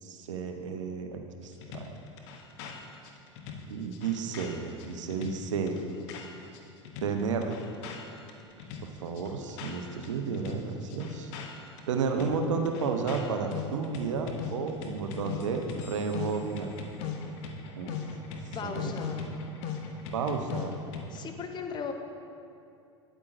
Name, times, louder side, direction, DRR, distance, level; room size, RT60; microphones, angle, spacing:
voice 1, 0.0-1.8 3.7-5.8 7.0-7.5 8.6-11.3 11.9-16.7 17.8-18.0 18.6-18.9 20.1-20.7, right 5 dB, 75° right, 5 dB, 0.7 m, -32 dB
sound 1, 1.6-6.6 6.8-10.1 10.3-21.3, left 5 dB, 60° left, 0.8 m, -39 dB
voice 2, 18.5-19.2 21.1-21.9, left 6 dB, 30° left, 5 dB, 0.7 m, -37 dB
8.9 x 8.4 x 2.5 m, 2.6 s
hypercardioid pair, 85°, 16 cm